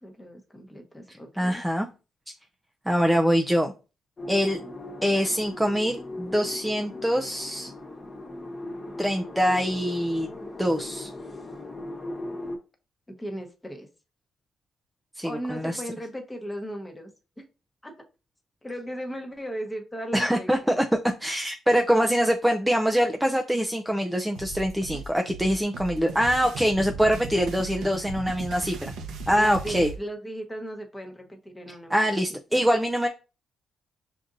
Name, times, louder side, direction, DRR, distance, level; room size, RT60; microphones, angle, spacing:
voice 1, 0.0-1.6 13.1-13.9 15.2-17.1 17.4-17.5 17.8-17.9 18.6-20.8 29.3-32.6, equal, 10° left, 3 dB, 1.0 m, -37 dB
voice 2, 1.1-1.9 2.9-3.7 4.3-4.6 5.0-7.7 9.0-10.3 10.6-11.1 15.2-15.8 20.1-20.8 21.2-28.8 29.3-29.9 31.9-33.1, equal, 5° right, 3 dB, 0.4 m, -24 dB
sound 1, 4.2-12.6, left 2 dB, 30° left, 1.1 m, -38 dB
sound 2, 24.3-30.0, right 4 dB, 80° right, 0.7 m, -37 dB
5.8 x 2.6 x 2.6 m, 0.32 s
cardioid pair, 90°, 0 cm